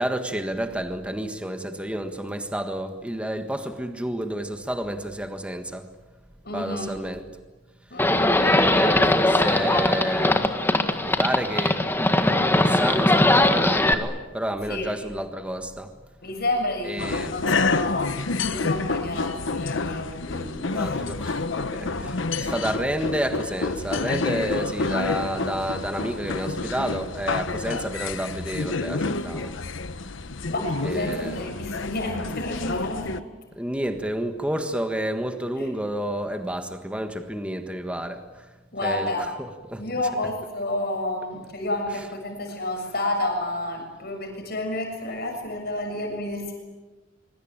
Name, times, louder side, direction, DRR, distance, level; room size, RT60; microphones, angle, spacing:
voice 1, 0.0-5.9 6.5-7.2 8.4-11.9 12.2-15.9 16.8-17.3 20.7-21.9 22.4-29.5 30.8-31.5 33.6-38.5 38.8-39.1 39.4-39.8, right 1 dB, 5° right, 6 dB, 1.5 m, -30 dB
voice 2, 6.4-6.9 7.9-8.4 14.7-14.9 16.2-21.0 21.9-22.0 30.5-33.2 35.6-35.7 38.7-39.3 39.8-46.5, left 1 dB, 55° left, 3 dB, 6.9 m, -30 dB
Livestock farm animals working animals, 8.0-13.9, left 1 dB, 10° left, 1.7 m, -20 dB
sound 1, 17.0-33.2, left 3 dB, 70° left, 1.1 m, -29 dB
25.5 x 23.5 x 9.0 m, 1.2 s
head